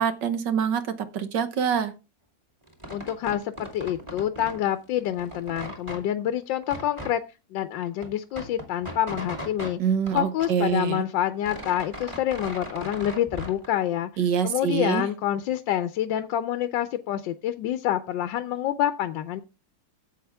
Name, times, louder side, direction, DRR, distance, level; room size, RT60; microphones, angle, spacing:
voice 1, 0.0-1.9 9.8-11.1 14.2-15.1, right 7 dB, 70° right, 10 dB, 1.7 m, -25 dB
sound 1, 2.7-4.6 4.9-6.0 6.6-7.1 7.6-7.7 7.9-9.7 10.1-11.0 11.2-13.7, equal, 15° right, 2.2 m, -38 dB
voice 2, 2.9-7.2 7.5-9.8 10.1-14.1 14.4-19.4, left 11 dB, 75° left, 10 dB, 1.3 m, -27 dB
12.0 x 8.0 x 3.4 m, 0.30 s
omnidirectional pair, 2.0 m